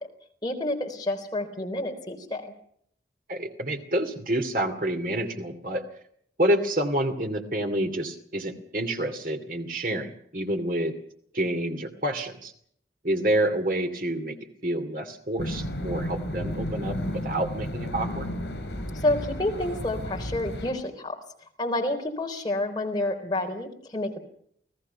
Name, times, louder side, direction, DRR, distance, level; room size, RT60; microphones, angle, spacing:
voice 1, 0.4-2.4 18.9-21.2 21.6-24.2, left 1 dB, 25° left, 2 dB, 4.0 m, -29 dB
voice 2, 3.3-5.8 6.4-10.9 11.3-12.5 13.0-18.3, right 1 dB, 50° right, 6 dB, 2.6 m, -28 dB
sound 1, 15.4-20.7, equal, 65° left, 7.3 m, -33 dB
30.0 x 18.5 x 5.7 m, 0.67 s
head